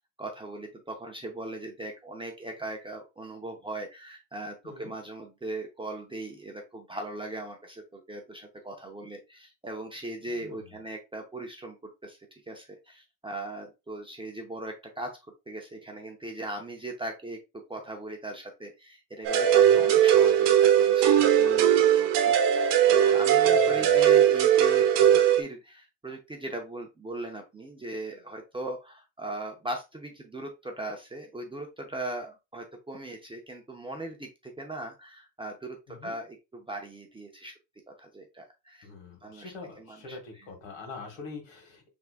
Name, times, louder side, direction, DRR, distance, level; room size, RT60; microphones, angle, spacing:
voice 1, 0.2-17.4 17.7-37.5 37.9-38.9 39.2-40.5, right 2 dB, 10° right, 1 dB, 0.5 m, -39 dB
voice 2, 10.3-10.7 19.6-19.9 23.4-24.0 35.9-36.2 38.8-41.9, left 3 dB, 75° left, 2 dB, 1.9 m, -45 dB
sound 1, 19.2-25.4, right 10 dB, 60° right, 0.9 m, -20 dB
4.8 x 3.5 x 2.4 m, 0.25 s
cardioid pair, 140°, 46 cm